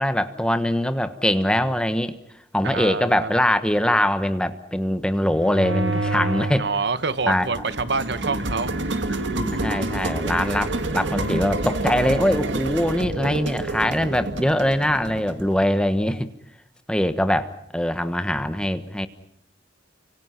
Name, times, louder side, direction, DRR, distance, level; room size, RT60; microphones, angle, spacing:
voice 1, 0.0-2.2 2.5-6.7 7.3-7.5 8.3-8.4 9.3-16.3 16.9-19.1, left 1 dB, 5° left, 1.3 m, -22 dB
voice 2, 2.6-3.3 6.6-8.7, right 4 dB, 65° right, 1.2 m, -26 dB
sound 1, 5.3-6.7 7.1-15.6, right 2 dB, 80° right, 1.9 m, -28 dB
30.0 x 25.5 x 5.8 m
head